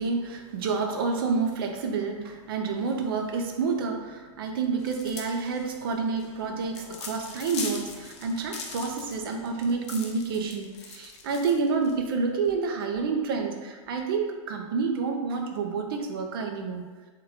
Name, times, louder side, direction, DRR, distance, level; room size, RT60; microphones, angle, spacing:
voice 1, 0.0-16.8, right 4 dB, 45° right, 3 dB, 0.4 m, -29 dB
sound 1, 4.8-12.1, left 4 dB, 55° left, 0.5 m, -41 dB
3.6 x 2.2 x 2.9 m, 1.4 s
supercardioid pair, 175°, 17 cm